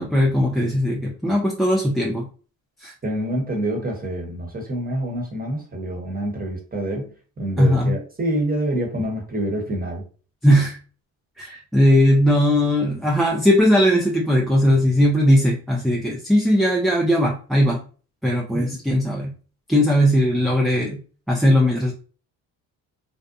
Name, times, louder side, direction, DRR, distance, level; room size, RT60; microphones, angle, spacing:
voice 1, 0.0-2.3 2.8-2.9 7.6-7.9 10.4-10.8 11.4-17.8 18.2-19.3 19.7-21.0 21.3-21.9, equal, ahead, -2 dB, 0.4 m, -18 dB
voice 2, 3.0-10.0 18.5-18.6, right 1 dB, 20° right, 1 dB, 1.1 m, -27 dB
2.5 x 2.2 x 2.5 m, 0.38 s
supercardioid pair, 65°, 47 cm